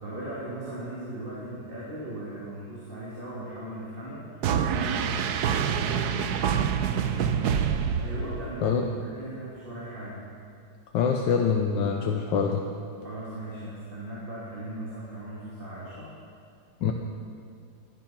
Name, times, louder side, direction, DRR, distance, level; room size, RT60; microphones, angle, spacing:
voice 1, 0.0-10.2 13.0-16.1, right 1 dB, 25° right, -8 dB, 3.0 m, -38 dB
sound 1, 4.4-8.7, right 8 dB, 65° right, 1.1 m, -26 dB
voice 2, 10.9-12.6 16.8-16.9, left 6 dB, 75° left, 3 dB, 1.5 m, -24 dB
16.0 x 12.5 x 6.0 m, 2.4 s
omnidirectional pair, 2.1 m